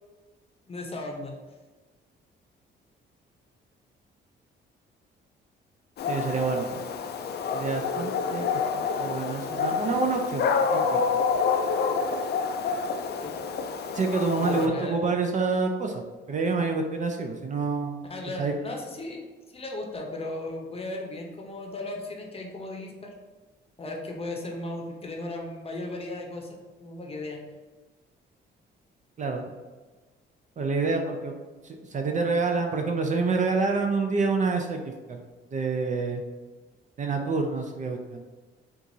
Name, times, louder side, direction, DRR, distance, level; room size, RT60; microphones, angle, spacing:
voice 1, 0.7-1.3 13.2-13.3 14.4-15.0 18.1-23.1 23.8-27.4, left 2 dB, 30° left, 1 dB, 0.7 m, -36 dB
Dog, 6.0-14.7, left 5 dB, 55° left, 0.4 m, -28 dB
voice 2, 6.1-6.8 7.5-11.2 13.9-16.0 16.3-18.0 18.4-18.5 29.2-29.4 30.6-31.3 31.6-34.8 35.1-35.2 35.5-36.2 37.0-38.2, right 4 dB, 40° right, 3 dB, 0.5 m, -27 dB
4.5 x 2.5 x 2.7 m, 1.3 s
cardioid pair, 90°, 20 cm